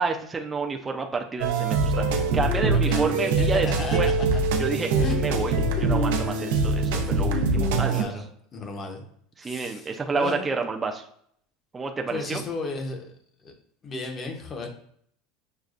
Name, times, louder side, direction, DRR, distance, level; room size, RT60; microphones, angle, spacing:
voice 1, 0.0-4.1 4.6-5.5 5.8-8.1 9.4-11.0 11.7-12.4, right 4 dB, 15° right, 2 dB, 0.4 m, -29 dB
sound 1, 1.4-8.0, right 3 dB, 85° right, 0.6 m, -23 dB
voice 2, 2.6-4.4 5.0-5.2 5.6-5.7 6.9-7.2 7.9-8.3 8.5-9.0 9.4-10.5 12.1-13.1 13.4-13.5 13.8-14.7, left 3 dB, 30° left, 4 dB, 0.8 m, -34 dB
6.5 x 2.2 x 2.5 m, 0.65 s
supercardioid pair, 140°, 0 cm